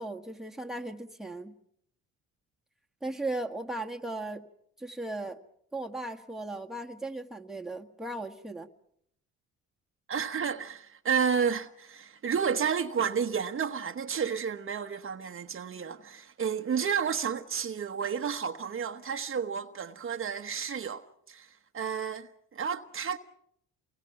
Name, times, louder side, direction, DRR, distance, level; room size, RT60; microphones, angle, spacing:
voice 1, 0.0-1.5 3.0-4.4 4.8-5.4 5.7-8.7, right 2 dB, ahead, 1.7 m, -37 dB
voice 2, 10.1-23.2, right 7 dB, 45° right, 1.1 m, -31 dB
29.0 x 22.0 x 5.9 m
cardioid pair, 90°, 30 cm